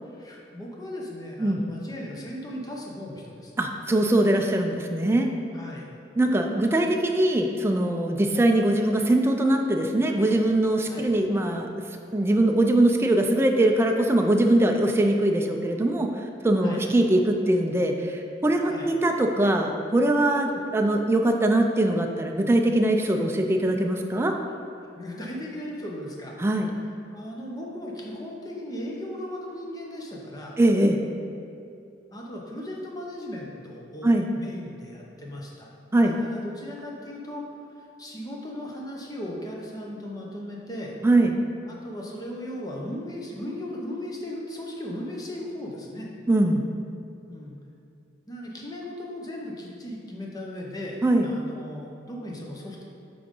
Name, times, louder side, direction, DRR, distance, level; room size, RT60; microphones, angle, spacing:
voice 1, 0.1-3.5 5.5-5.9 8.3-8.4 10.8-11.1 16.6-16.8 18.7-18.9 25.0-26.4 27.1-30.6 32.1-35.7 36.0-37.5 38.0-40.9 41.7-46.1 47.3-47.5 48.3-52.8, left 1 dB, 20° left, -2 dB, 0.8 m, -37 dB
voice 2, 3.6-5.3 6.2-11.7 12.1-16.1 16.4-24.3 26.4-26.7 30.6-31.0 34.0-34.3 35.9-36.1 41.0-41.4 46.3-46.6 51.0-51.3, right 1 dB, 15° right, 3 dB, 0.3 m, -22 dB
8.6 x 3.8 x 3.7 m, 2.6 s
head